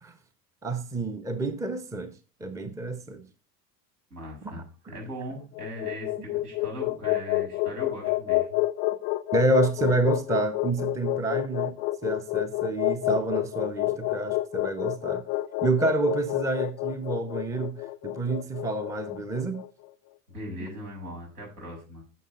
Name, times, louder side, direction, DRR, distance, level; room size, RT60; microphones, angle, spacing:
voice 1, 0.6-3.2 4.4-4.9 9.3-15.2 15.6-19.6 20.6-20.7, right 2 dB, 5° right, 0.8 m, -28 dB
voice 2, 4.1-8.6 20.3-22.0, equal, 70° right, 6.6 m, -40 dB
sound 1, 5.4-19.7, left 17 dB, 30° left, 0.4 m, -29 dB
9.3 x 7.0 x 5.1 m
figure-of-eight pair, 75°, 47 cm